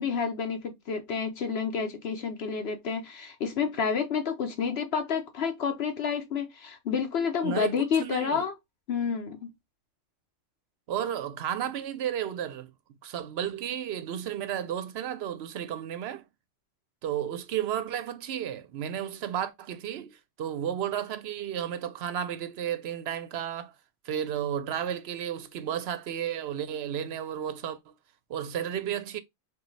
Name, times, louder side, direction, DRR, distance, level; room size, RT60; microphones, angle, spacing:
voice 1, 0.0-8.5 8.9-9.5, left 6 dB, 60° left, 0.8 m, -29 dB
voice 2, 7.4-8.4 10.9-12.7 13.0-16.2 17.0-23.7 24.0-27.8 28.3-29.2, right 9 dB, 65° right, 0.7 m, -33 dB
5.0 x 2.3 x 3.1 m
omnidirectional pair, 1.3 m